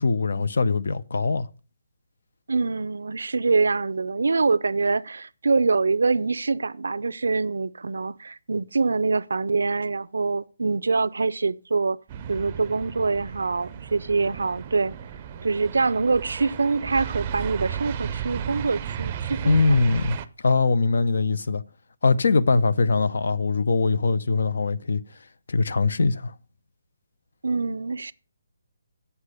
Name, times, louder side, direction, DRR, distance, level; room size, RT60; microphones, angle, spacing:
voice 1, 0.0-1.5 19.5-20.2 20.4-21.6 22.0-25.0 25.5-26.3, left 3 dB, 70° left, 0.7 m, -22 dB
voice 2, 2.5-12.0 12.3-14.9 15.4-19.6 27.4-28.1, right 4 dB, 90° right, 0.5 m, -24 dB
sound 1, 12.1-20.3, right 8 dB, 25° right, 0.5 m, -34 dB
8.2 x 5.5 x 6.5 m
hypercardioid pair, 170°, 0 cm